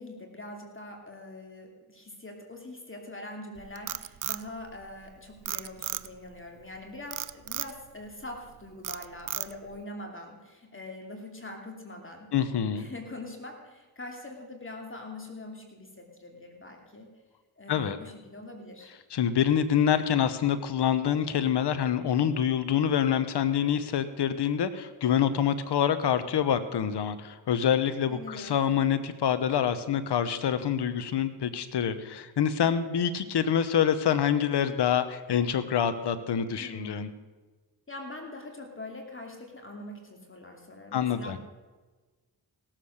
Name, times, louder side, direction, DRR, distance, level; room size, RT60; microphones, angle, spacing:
voice 1, 0.0-12.3 12.7-17.1 17.6-18.9 28.1-28.7 36.6-37.2 37.9-41.4, left 2 dB, 30° left, 2 dB, 2.7 m, -43 dB
Frog, 3.6-5.1 5.5-6.3 7.1-7.8 8.2-8.5 8.8-9.8, right 10 dB, 50° right, 0.6 m, -34 dB
voice 2, 12.3-12.9 17.7-18.0 19.1-37.1 40.9-41.4, left 8 dB, 70° left, 12 dB, 1.0 m, -26 dB
17.5 x 7.5 x 6.5 m, 1.3 s
cardioid pair, 55°, 42 cm